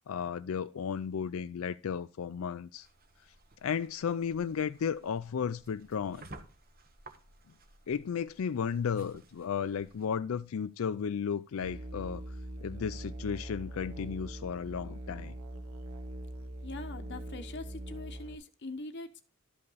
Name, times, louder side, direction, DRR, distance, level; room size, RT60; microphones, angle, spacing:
voice 1, 0.1-2.9 3.6-6.2 7.9-12.2 12.6-15.3, left 7 dB, 90° left, 0.4 m, -34 dB
sound 1, 2.7-10.1, right 2 dB, 45° right, 1.1 m, -55 dB
Musical instrument, 11.6-18.4, right 1 dB, 80° right, 0.9 m, -42 dB
voice 2, 16.6-19.2, left 2 dB, 55° left, 0.8 m, -43 dB
11.5 x 5.4 x 4.0 m
head